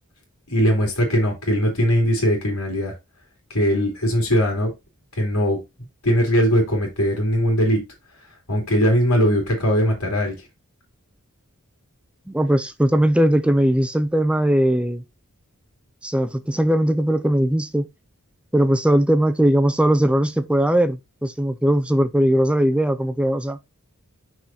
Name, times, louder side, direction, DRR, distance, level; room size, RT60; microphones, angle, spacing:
voice 1, 0.5-2.9 3.5-4.7 5.2-5.6 6.0-7.8 8.5-10.4, equal, 85° left, 2.6 m, -20 dB
voice 2, 12.3-15.0 16.0-17.9 18.5-23.6, right 1 dB, 5° right, 0.4 m, -19 dB
6.0 x 5.0 x 4.1 m
head